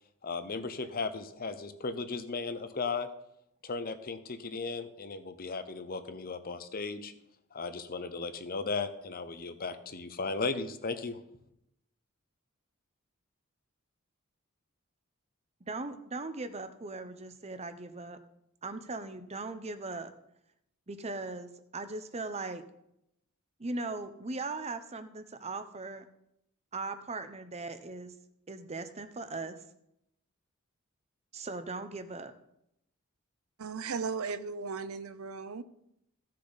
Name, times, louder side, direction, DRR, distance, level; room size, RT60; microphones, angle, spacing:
voice 1, 0.2-3.1 3.6-7.1 7.5-11.2, left 4 dB, 45° left, 10 dB, 0.8 m, -36 dB
voice 2, 15.7-18.2 18.6-20.1 20.9-22.6 23.6-26.0 26.7-28.1 28.5-29.5 31.3-32.3, right 3 dB, 30° right, 10 dB, 0.8 m, -39 dB
voice 3, 33.6-35.6, right 5 dB, 90° right, 13 dB, 0.6 m, -36 dB
15.5 x 6.6 x 4.0 m, 0.79 s
head